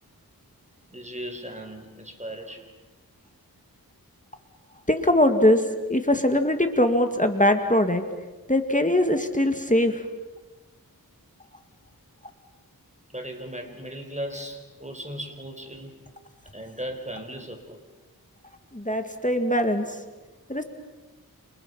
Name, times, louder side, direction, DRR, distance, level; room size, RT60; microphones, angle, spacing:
voice 1, 0.9-2.7 13.1-15.9 16.5-17.8, equal, 20° right, 4 dB, 4.7 m, -37 dB
voice 2, 4.9-5.6 5.9-8.0 8.5-10.0 18.7-19.9 20.5-20.6, left 1 dB, 20° left, 6 dB, 2.2 m, -21 dB
29.0 x 28.5 x 5.7 m, 1.2 s
wide cardioid pair, 45°, 37 cm